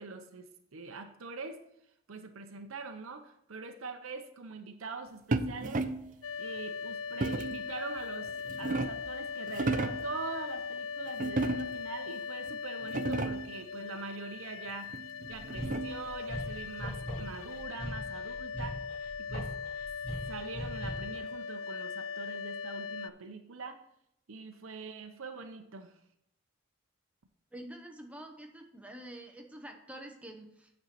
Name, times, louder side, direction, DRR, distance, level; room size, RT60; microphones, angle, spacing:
voice 1, 0.0-1.6 2.1-5.9 6.4-14.9 15.3-18.8 19.2-19.5 20.3-23.8 24.3-26.0, right 4 dB, 85° right, 6 dB, 0.7 m, -43 dB
sound 1, 5.3-6.1 7.2-7.6 8.3-9.1 9.5-10.1 11.2-11.9 12.5-12.6 12.8-13.6 14.9-16.1, right 2 dB, 40° right, 0.5 m, -33 dB
sound 2, 6.2-23.1, left 5 dB, 90° left, 0.4 m, -40 dB
sound 3, 15.3-21.2, equal, 40° left, 2.3 m, -40 dB
voice 2, 27.5-30.7, right 1 dB, 5° right, 3 dB, 1.0 m, -47 dB
8.3 x 4.4 x 6.7 m, 0.77 s
head